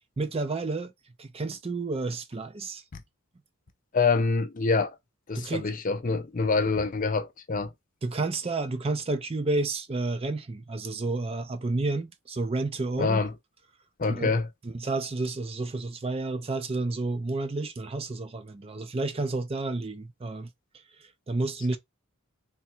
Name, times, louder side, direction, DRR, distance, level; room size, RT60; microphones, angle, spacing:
voice 1, 0.2-0.9 1.2-2.8 5.3-5.7 8.0-13.2 14.1-14.3 14.6-20.5 21.3-21.8, right 3 dB, 25° right, 0.4 m, -30 dB
voice 2, 3.9-4.9 5.3-7.7 13.0-13.3 14.0-14.5, left 4 dB, 35° left, 0.5 m, -25 dB
3.6 x 2.3 x 4.3 m
head